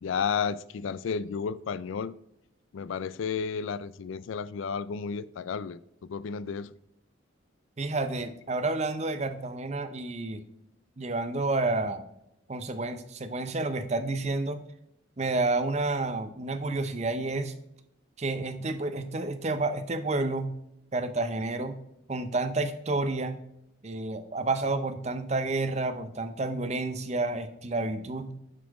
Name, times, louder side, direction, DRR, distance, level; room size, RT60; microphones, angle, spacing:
voice 1, 0.0-2.1 2.7-6.7, left 6 dB, 80° left, 0.4 m, -32 dB
voice 2, 7.8-10.4 11.0-12.1 12.5-14.6 15.2-17.5 18.2-20.5 20.9-21.8 22.1-23.4 23.8-28.4, right 2 dB, 35° right, 0.6 m, -30 dB
7.3 x 4.3 x 4.7 m
head